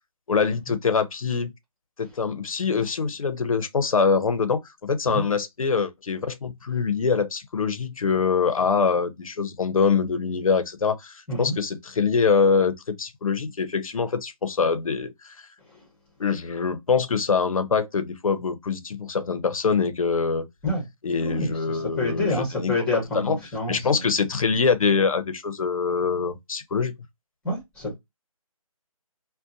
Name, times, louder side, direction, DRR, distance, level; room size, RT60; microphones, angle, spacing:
voice 1, 0.3-1.5 2.0-15.3 16.2-20.4 21.0-22.7 23.1-23.4 23.7-27.0, left 5 dB, 65° left, 0.6 m, -24 dB
voice 2, 21.3-24.0 27.4-28.0, left 2 dB, 5° left, 0.8 m, -28 dB
2.7 x 2.1 x 2.5 m
figure-of-eight pair, 155°, 19 cm